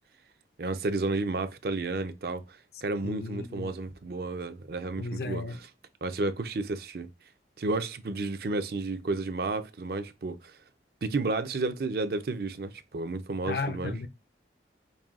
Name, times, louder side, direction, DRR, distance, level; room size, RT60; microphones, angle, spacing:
voice 1, 0.6-5.4 6.0-7.1 7.6-10.6 11.0-13.9, right 3 dB, 55° right, 0.5 m, -32 dB
voice 2, 3.0-3.7 5.0-5.6 13.5-14.1, left 3 dB, 55° left, 0.5 m, -34 dB
5.4 x 2.6 x 2.4 m
head